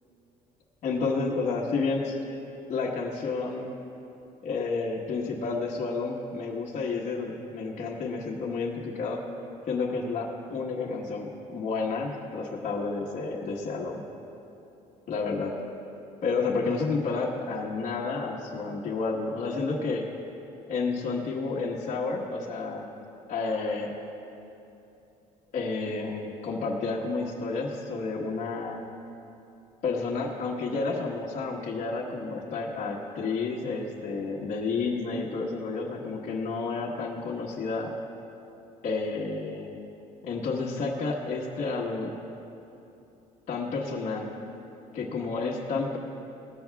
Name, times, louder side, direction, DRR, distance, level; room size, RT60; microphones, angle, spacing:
voice 1, 0.8-2.2 2.7-3.7 4.4-9.2 9.7-14.0 15.1-15.5 16.2-20.1 20.7-22.9 23.3-23.9 25.5-28.8 29.8-37.9 38.8-39.7 40.2-42.1 43.5-44.3 44.9-46.0, left 4 dB, 50° left, -5 dB, 1.4 m, -30 dB
19.5 x 14.0 x 2.3 m, 2.9 s
cardioid pair, 125°, 15 cm